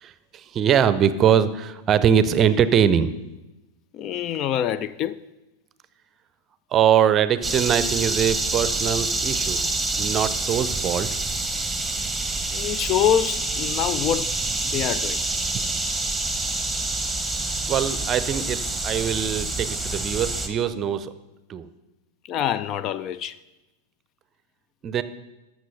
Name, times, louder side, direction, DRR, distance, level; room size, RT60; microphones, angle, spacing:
voice 1, 0.0-3.1 6.7-9.6 10.0-11.1 15.5-15.6 17.7-21.1 21.5-21.7 24.8-25.0, right 8 dB, 30° right, 0.6 m, -22 dB
voice 2, 3.9-5.2 12.5-14.3 14.6-15.2 22.2-23.4, left 10 dB, 35° left, 0.3 m, -25 dB
sound 1, 7.4-20.5, right 2 dB, 5° right, 1.1 m, -27 dB
14.0 x 6.2 x 5.6 m
figure-of-eight pair, 90°, 0 cm